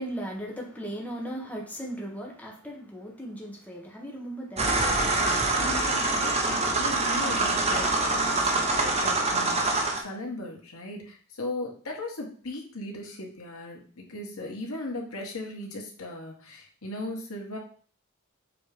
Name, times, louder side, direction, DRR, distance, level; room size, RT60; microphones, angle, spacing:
voice 1, 0.0-4.8, right 1 dB, 5° left, -1 dB, 1.3 m, -37 dB
sound 1, 4.6-10.0, right 2 dB, 30° right, 1.2 m, -25 dB
voice 2, 5.5-17.6, left 2 dB, 85° left, 0 dB, 1.9 m, -37 dB
6.9 x 3.4 x 5.0 m, 0.43 s
head